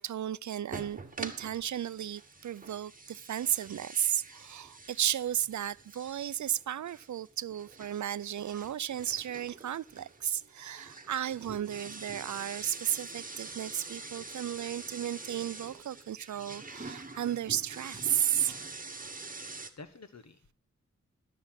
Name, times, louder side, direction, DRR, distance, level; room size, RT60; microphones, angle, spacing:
voice 1, 0.0-18.6, right 10 dB, 80° right, 0.5 m, -34 dB
sound 1, 0.7-19.7, right 3 dB, 30° right, 1.3 m, -46 dB
voice 2, 19.0-20.5, left 3 dB, 65° left, 1.5 m, -52 dB
12.5 x 7.0 x 5.9 m
wide cardioid pair, 65°, 29 cm